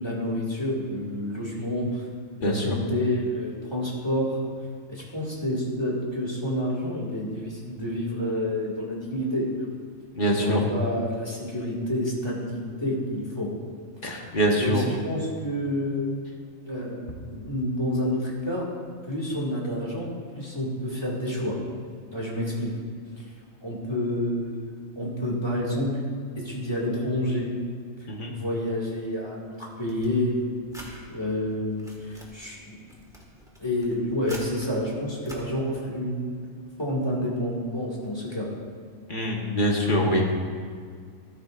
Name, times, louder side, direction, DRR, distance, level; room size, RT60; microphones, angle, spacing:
voice 1, 0.0-2.1 2.4-4.4 4.9-9.5 10.4-13.5 14.6-16.1 16.6-17.0 17.3-18.7 19.1-21.6 22.1-22.7 23.2-23.3 23.6-24.7 25.0-26.0 26.4-27.5 28.2-30.4 30.8-32.8 33.6-36.3 36.8-38.5, left 1 dB, 20° left, -4 dB, 2.2 m, -29 dB
voice 2, 2.4-2.8 10.1-10.6 14.0-14.8 28.1-28.3 39.1-40.3, equal, 40° left, -1 dB, 1.5 m, -24 dB
sound 1, 29.9-30.9 31.5-32.3 32.8-34.7 35.2-35.4, equal, ahead, 1.6 m, -45 dB
14.0 x 12.5 x 2.5 m, 2.1 s
omnidirectional pair, 1.4 m